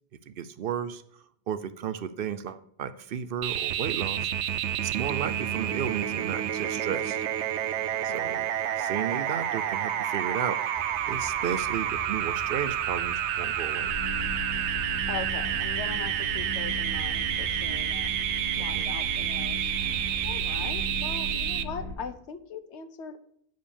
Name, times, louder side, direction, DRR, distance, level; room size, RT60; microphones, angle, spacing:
voice 1, 0.3-1.0 1.5-4.3 4.8-7.2 8.0-8.5 8.8-10.6 11.1-13.9 18.6-18.9, right 8 dB, 60° right, 13 dB, 0.7 m, -33 dB
sound 1, 3.4-21.6, right 10 dB, 90° right, 0.9 m, -29 dB
voice 2, 7.9-8.4 15.1-19.7 20.2-23.2, left 5 dB, 85° left, 10 dB, 1.1 m, -40 dB
Bird vocalization bird call bird song, 10.7-20.8, equal, 20° right, 1.6 m, -45 dB
sound 2, 13.8-21.9, left 1 dB, 35° left, 4.2 m, -37 dB
9.3 x 5.1 x 7.0 m, 0.68 s
omnidirectional pair, 1.1 m